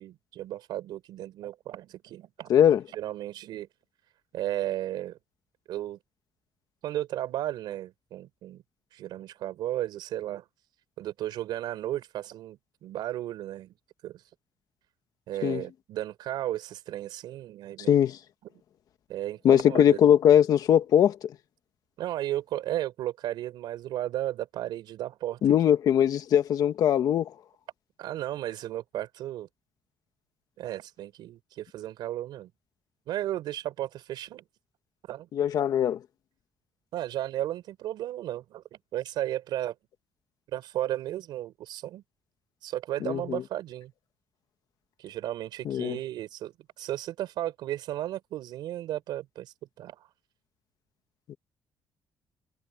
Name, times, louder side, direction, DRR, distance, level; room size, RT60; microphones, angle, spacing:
voice 1, 0.0-2.5 2.9-3.7 4.3-5.2 5.7-6.0 6.8-8.6 8.9-10.5 11.0-13.7 14.0-14.3 15.3-18.0 19.1-20.0 22.0-25.5 28.0-29.5 30.6-32.5 33.1-34.4 35.1-35.3 36.9-38.6 38.9-39.7 40.5-42.0 42.6-43.9 45.0-50.1, right 13 dB, 80° right, 5.1 m, -34 dB
voice 2, 2.5-2.8 15.4-15.6 17.9-18.2 19.4-21.3 25.4-27.3 35.3-36.0 43.0-43.4 45.7-46.0, left 9 dB, 60° left, 1.7 m, -21 dB
cardioid pair, 155°, 7 cm